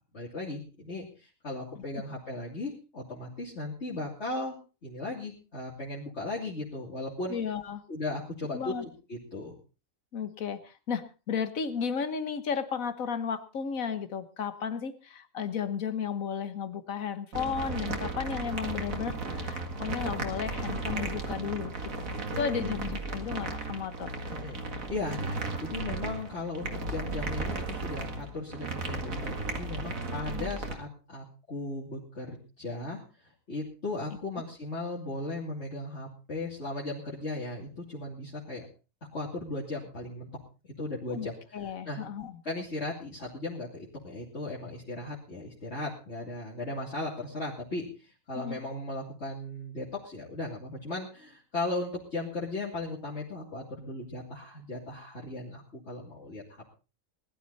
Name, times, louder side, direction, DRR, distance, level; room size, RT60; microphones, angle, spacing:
voice 1, 0.1-4.6 4.8-7.4 7.9-9.6 22.3-22.8 24.3-33.0 33.5-38.6 39.1-40.3 40.8-41.3 41.9-42.0 42.4-56.6, left 2 dB, 50° left, -5 dB, 3.1 m, -37 dB
voice 2, 7.3-7.8 8.5-8.8 10.1-22.1 22.4-24.1 30.3-30.5 41.1-41.3 41.5-42.4 48.3-48.6, left 7 dB, 75° left, 12 dB, 1.6 m, -34 dB
sound 1, 17.3-30.7, right 3 dB, 75° right, 2.4 m, -35 dB
19.5 x 12.0 x 4.1 m, 0.33 s
omnidirectional pair, 1.4 m